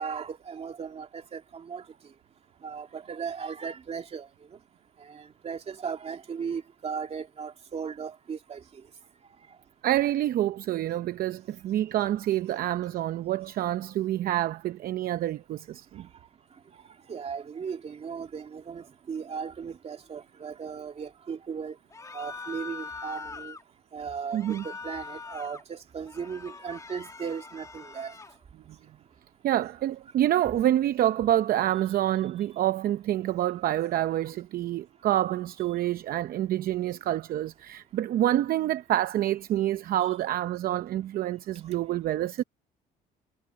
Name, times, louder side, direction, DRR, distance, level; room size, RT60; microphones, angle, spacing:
voice 1, 0.0-1.8 2.6-4.3 5.1-8.6 17.1-21.8 22.1-23.5 23.9-28.1, right 6 dB, 40° right, 2.6 m, -36 dB
voice 2, 9.8-16.1 24.3-24.6 29.4-42.4, right 13 dB, 60° right, 0.7 m, -27 dB
sound 1, 21.9-23.6 24.3-25.6 26.0-28.4, left 4 dB, 20° left, 2.2 m, -42 dB
cardioid pair, 110°, 17 cm